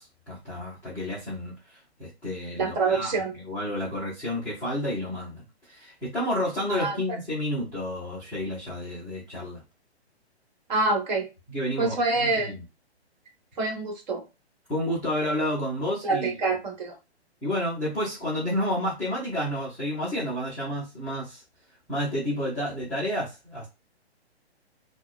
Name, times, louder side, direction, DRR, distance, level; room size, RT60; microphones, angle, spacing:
voice 1, 0.0-3.2 3.5-9.6 11.5-12.6 14.7-16.6 17.4-21.4 21.9-23.7, left 1 dB, 5° left, -12 dB, 0.4 m, -30 dB
voice 2, 2.6-3.4 6.7-7.0 10.7-11.3 11.8-12.5 13.6-14.2 16.0-17.0, right 3 dB, 40° right, 2 dB, 1.2 m, -26 dB
5.8 x 2.1 x 2.3 m, 0.28 s
figure-of-eight pair, 135°, 34 cm